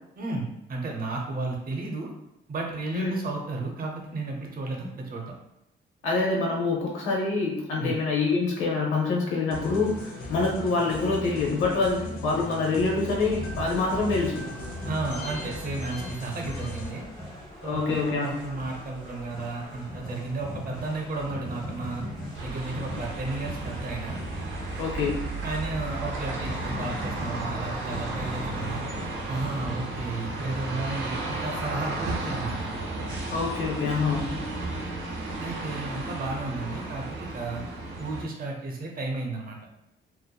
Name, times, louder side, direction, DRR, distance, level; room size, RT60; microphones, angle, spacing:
voice 1, 0.2-2.1 2.5-5.3 7.8-8.0 14.8-17.0 17.6-22.0 22.4-24.2 25.4-28.8 29.3-32.6 35.4-37.6 38.0-39.6, right 3 dB, 45° right, 1 dB, 0.7 m, -33 dB
voice 2, 6.0-14.4 17.6-18.3 24.8-25.1 33.3-34.3, left 3 dB, 85° left, -1 dB, 0.7 m, -26 dB
sound 1, 9.5-16.9, left 2 dB, 50° left, 0.7 m, -37 dB
sound 2, 13.2-29.9, left 1 dB, 20° left, 1.1 m, -40 dB
sound 3, 22.3-38.2, right 2 dB, 85° right, 0.7 m, -34 dB
2.8 x 2.1 x 2.2 m, 0.84 s
cardioid pair, 90°, 20 cm